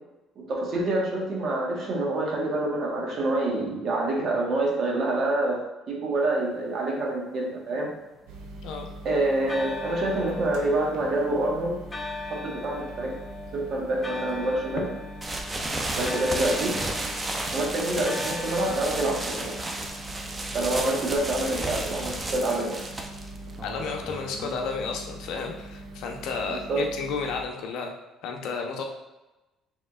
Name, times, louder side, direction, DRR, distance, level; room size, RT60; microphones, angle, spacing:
voice 1, 0.4-5.6 5.9-7.9 9.0-11.8 12.3-13.1 13.5-14.8 15.9-16.8 17.5-19.5 20.5-22.8 26.5-26.8, right 2 dB, 55° right, -2 dB, 1.3 m, -27 dB
sound 1, 7.4-8.9 9.5-20.0, left 3 dB, 20° left, 0.5 m, -40 dB
sound 2, 8.3-27.4, right 2 dB, 80° right, 0.7 m, -43 dB
sound 3, 15.2-24.8, right 2 dB, 20° right, 0.6 m, -33 dB
voice 2, 23.6-27.9 28.2-28.8, left 4 dB, 75° left, 2 dB, 0.7 m, -32 dB
5.2 x 3.6 x 2.4 m, 1.0 s
supercardioid pair, 90°, 0 cm